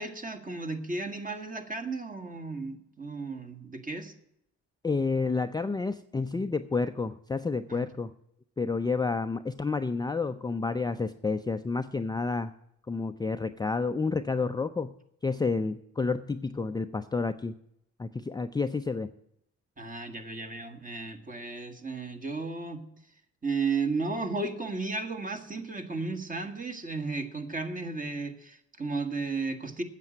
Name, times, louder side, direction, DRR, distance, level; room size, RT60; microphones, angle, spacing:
voice 1, 0.0-4.1 7.7-7.9 19.8-22.8 23.4-29.8, right 3 dB, 25° right, 6 dB, 1.8 m, -34 dB
voice 2, 4.8-8.1 8.6-12.5 12.9-14.9 15.2-17.5 18.0-19.1, left 4 dB, 15° left, 8 dB, 0.4 m, -30 dB
9.5 x 7.5 x 9.0 m, 0.76 s
cardioid pair, 90°, 30 cm